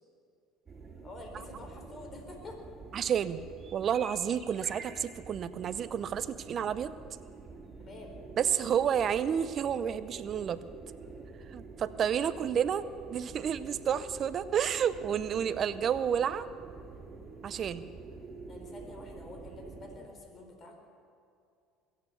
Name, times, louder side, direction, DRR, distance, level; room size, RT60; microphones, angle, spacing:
sound 1, 0.7-20.0, right 3 dB, 30° right, 3.3 m, -47 dB
voice 1, 1.0-2.6 7.8-8.2 12.4-12.5 12.8-13.0 18.5-20.8, left 2 dB, 40° left, 3 dB, 4.4 m, -48 dB
voice 2, 2.9-3.4 3.7-6.9 8.4-10.6 11.5-12.8 13.1-16.5 17.4-17.9, right 8 dB, 45° right, 14 dB, 0.6 m, -30 dB
21.5 x 9.5 x 7.0 m, 2.5 s
hypercardioid pair, 75°, 0 cm